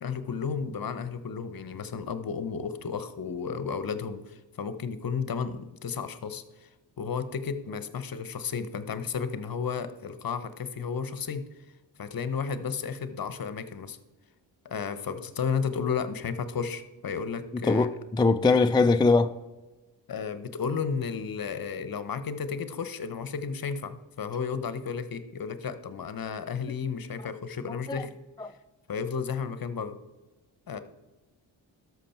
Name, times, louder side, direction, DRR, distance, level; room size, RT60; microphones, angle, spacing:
voice 1, 0.0-6.7 7.0-11.4 12.0-14.0 14.6-17.9 20.1-28.1 28.9-30.0 30.7-30.8, left 6 dB, 45° left, 1.0 m, -33 dB
voice 2, 17.7-19.3 27.9-28.0 28.4-28.5, left 3 dB, 10° left, 0.4 m, -22 dB
12.5 x 6.2 x 4.4 m
supercardioid pair, 55°, 47 cm